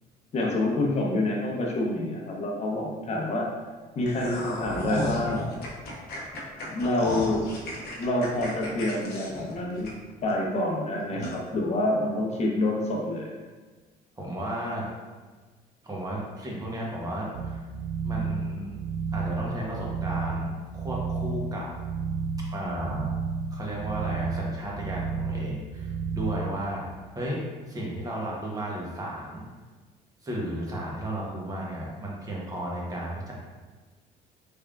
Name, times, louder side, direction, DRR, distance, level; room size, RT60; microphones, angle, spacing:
voice 1, 0.3-3.5 4.0-5.5 6.6-7.4 8.0-9.9 10.2-13.3, left 1 dB, 40° left, -2 dB, 0.8 m, -27 dB
sound 1, 4.0-10.3 10.7-10.8 11.2-11.4, left 1 dB, 70° left, 0.8 m, -35 dB
voice 2, 14.2-14.8 15.8-17.6 18.0-18.7 19.1-21.7 22.4-23.1 23.5-26.8 27.1-27.4 27.7-29.5 30.2-33.3, right 1 dB, 20° right, -4 dB, 0.9 m, -34 dB
sound 2, 17.3-26.6, right 5 dB, 50° right, 0.4 m, -32 dB
3.5 x 3.3 x 2.4 m, 1.3 s
cardioid pair, 110°, 17 cm